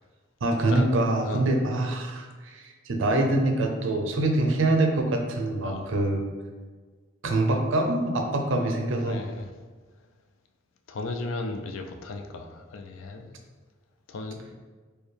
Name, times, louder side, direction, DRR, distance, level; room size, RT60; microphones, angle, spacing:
voice 1, 0.4-6.3 7.2-9.2, right 2 dB, 70° right, 3 dB, 0.5 m, -25 dB
voice 2, 9.1-9.4 10.9-13.3 14.1-14.5, left 3 dB, 80° left, 4 dB, 0.4 m, -35 dB
4.3 x 2.2 x 3.3 m, 1.4 s
head